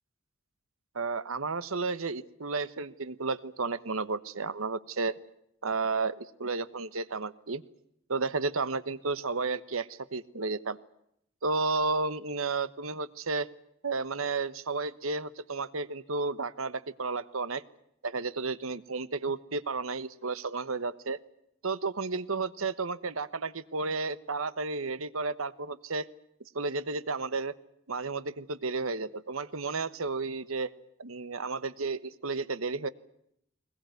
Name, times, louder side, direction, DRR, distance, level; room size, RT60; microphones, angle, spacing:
voice 1, 0.9-5.2 5.6-7.6 8.1-10.8 11.4-13.5 13.8-17.6 18.0-21.2 21.6-26.1 26.5-27.5 27.9-30.7 31.0-32.9, right 3 dB, 90° right, 15 dB, 1.2 m, -32 dB
21.0 x 21.0 x 9.3 m, 0.75 s
head